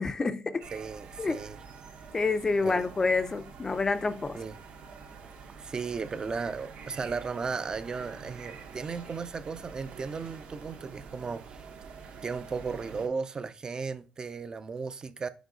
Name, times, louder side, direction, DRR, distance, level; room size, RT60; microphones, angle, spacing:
voice 1, 0.0-0.7 1.2-1.4 2.1-4.4, left 3 dB, 20° left, 0.5 m, -28 dB
sound 1, 0.6-13.1, right 5 dB, 65° right, 1.4 m, -47 dB
voice 2, 0.7-1.6 2.6-2.9 4.3-4.5 5.6-11.7 12.2-15.3, right 5 dB, 30° right, 0.5 m, -35 dB
5.3 x 5.1 x 3.8 m
cardioid pair, 110°, 3 cm